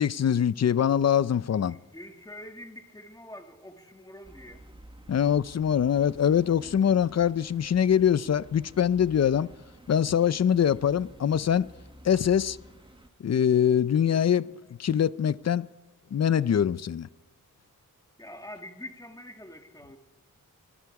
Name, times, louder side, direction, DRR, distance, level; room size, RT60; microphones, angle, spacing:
voice 1, 0.0-1.8 5.1-9.5 9.9-11.7 12.0-12.6 13.2-14.5 14.8-15.7 16.1-17.1, left 8 dB, 50° left, 0.6 m, -23 dB
voice 2, 1.6-4.6 18.2-20.0, left 1 dB, 10° left, 2.5 m, -45 dB
sound 1, 4.2-13.1, right 1 dB, 15° right, 1.7 m, -50 dB
26.0 x 20.5 x 4.8 m
wide cardioid pair, 125°, 34 cm